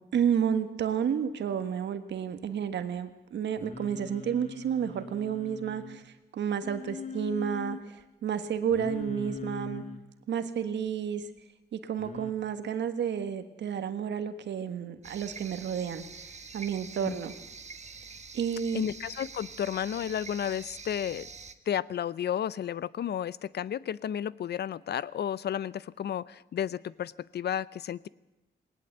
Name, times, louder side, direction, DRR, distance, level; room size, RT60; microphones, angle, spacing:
voice 1, 0.1-9.8 10.3-11.3 11.7-17.3 18.3-18.9, right 8 dB, 80° right, 10 dB, 1.5 m, -31 dB
Singing, 3.6-6.0 6.6-7.8 8.7-10.0 12.0-12.3, left 4 dB, 45° left, 2.2 m, -41 dB
sound 1, 15.0-21.5, right 5 dB, 40° right, 1.3 m, -46 dB
voice 2, 18.7-21.3 21.7-28.1, left 9 dB, 70° left, 20 dB, 0.6 m, -32 dB
19.0 x 19.0 x 8.1 m, 1.0 s
cardioid pair, 80°, 18 cm